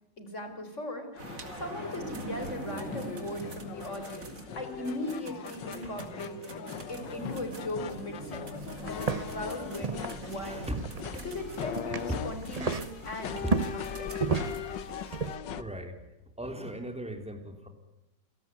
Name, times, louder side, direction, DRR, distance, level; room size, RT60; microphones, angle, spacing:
voice 1, 0.2-1.2 1.6-8.5 8.9-10.7 11.2-14.2, left 1 dB, 40° left, 7 dB, 4.7 m, -38 dB
sound 1, 1.1-15.6, left 9 dB, 85° left, 1.8 m, -40 dB
sound 2, 1.2-14.6, right 3 dB, 50° right, 3.1 m, -44 dB
sound 3, 8.6-15.4, right 4 dB, 30° right, 0.7 m, -35 dB
voice 2, 10.4-10.8 11.0-11.2 12.1-12.2 13.4-13.5 15.0-15.2 15.6-16.0 16.4-17.7, right 1 dB, 5° right, 6 dB, 3.5 m, -37 dB
28.5 x 18.5 x 9.4 m, 0.93 s
omnidirectional pair, 1.9 m